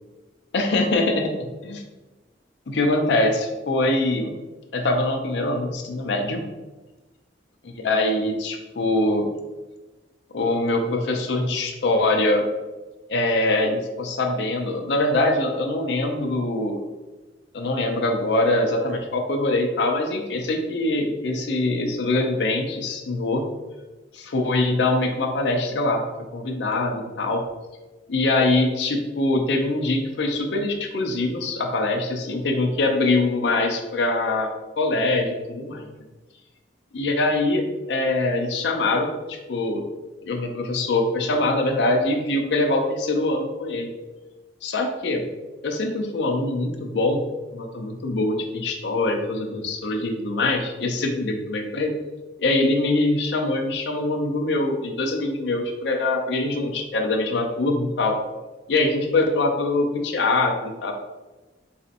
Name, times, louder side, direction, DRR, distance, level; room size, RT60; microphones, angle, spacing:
voice 1, 0.5-1.8 2.7-4.4 4.7-6.4 7.6-9.3 10.3-12.4 13.1-16.8 17.5-23.5 24.1-26.0 26.3-27.4 28.1-35.9 36.9-37.6 37.9-39.8 40.2-43.9 44.6-45.2 45.6-47.2 47.5-51.9 52.4-58.2 58.7-60.9, left 2 dB, 70° left, 3 dB, 0.5 m, -23 dB
4.1 x 2.7 x 2.5 m, 1.2 s
head